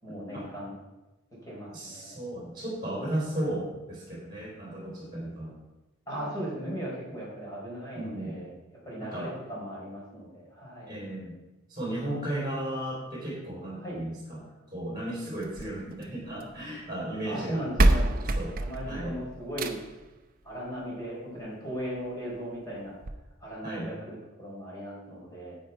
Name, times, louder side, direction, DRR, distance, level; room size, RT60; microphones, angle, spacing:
voice 1, 0.0-0.7 1.4-2.1 6.1-8.5 8.8-11.0 13.8-14.0 17.2-18.2 18.6-19.8 20.4-22.9 23.4-25.6, equal, 15° left, -6 dB, 4.2 m, -37 dB
voice 2, 1.7-5.5 7.1-7.2 7.9-8.4 9.0-9.3 10.9-11.3 11.7-14.4 14.7-17.7 18.4-18.5 18.8-19.2 23.6-23.9, right 1 dB, 20° right, -6 dB, 3.8 m, -35 dB
sound 1, 15.4-16.6 17.4-17.5 17.8-20.1 21.4-21.5 22.0-22.1 22.3-22.4 23.0-23.1, right 1 dB, 40° right, 0.7 m, -26 dB
10.0 x 8.4 x 4.6 m, 1.0 s
head